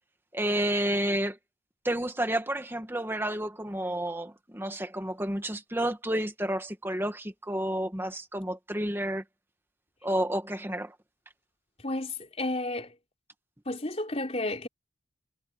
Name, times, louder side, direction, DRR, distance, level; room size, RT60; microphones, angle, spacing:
voice 1, 0.3-1.4 1.8-9.2 10.0-10.9, right 1 dB, 10° right, 1.8 m, -30 dB
voice 2, 11.8-13.0 13.7-14.7, left 2 dB, 35° left, 3.7 m, -32 dB
head